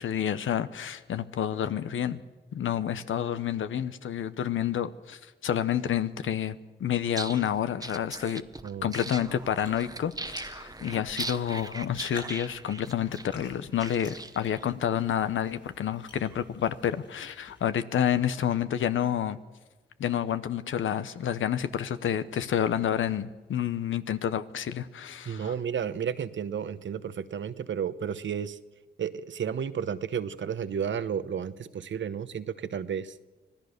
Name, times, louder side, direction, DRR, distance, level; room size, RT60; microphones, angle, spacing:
voice 1, 0.0-2.2 2.5-8.4 8.8-19.4 20.0-25.5, left 9 dB, 85° left, 0.9 m, -29 dB
sound 1, 7.0-14.6, right 2 dB, 20° right, 0.9 m, -40 dB
sound 2, 9.0-17.7, left 3 dB, 65° left, 7.9 m, -50 dB
voice 2, 25.2-28.6 29.0-33.1, right 7 dB, 70° right, 1.0 m, -32 dB
25.5 x 16.5 x 6.7 m
cardioid pair, 60°, 20 cm